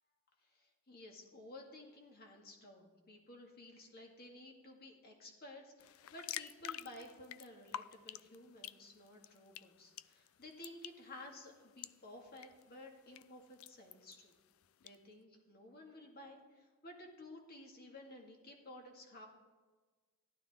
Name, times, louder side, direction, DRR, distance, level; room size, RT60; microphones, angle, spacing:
voice 1, 0.4-14.3 14.8-19.3, left 1 dB, 50° left, 1 dB, 2.1 m, -54 dB
sound 1, 5.8-15.0, left 11 dB, 90° left, 0.4 m, -51 dB
15.0 x 11.5 x 3.6 m, 1.4 s
head